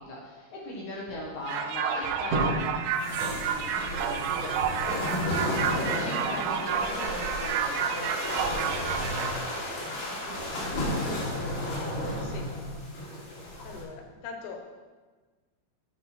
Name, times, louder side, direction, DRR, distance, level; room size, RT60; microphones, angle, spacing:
voice 1, 0.0-2.4 3.0-8.1 11.0-12.7, left 1 dB, 65° left, -4 dB, 1.9 m, -39 dB
sound 1, 1.5-1.7 2.1-6.8 7.2-7.3, right 1 dB, 45° right, 2.3 m, -36 dB
sound 2, 1.5-9.3, right 7 dB, 85° right, 2.6 m, -30 dB
sound 3, 3.0-13.8, left 1 dB, 50° left, 3.4 m, -33 dB
voice 2, 9.8-10.2 12.2-12.5 13.7-14.6, left 5 dB, 85° left, 3 dB, 3.7 m, -42 dB
9.2 x 8.7 x 4.6 m, 1.3 s
omnidirectional pair, 5.6 m